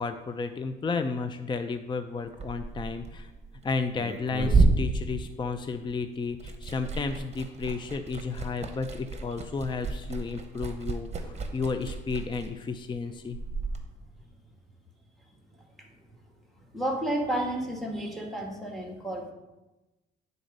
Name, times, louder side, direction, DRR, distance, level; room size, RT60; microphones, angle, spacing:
voice 1, 0.0-3.3 3.6-13.4, left 4 dB, 25° left, 8 dB, 0.5 m, -32 dB
Liquid, 2.2-5.9 6.2-13.8, right 3 dB, 35° right, 1.0 m, -30 dB
voice 2, 16.7-19.3, right 1 dB, ahead, 1 dB, 1.7 m, -31 dB
9.2 x 4.0 x 5.3 m, 1.1 s
cardioid pair, 90°, 20 cm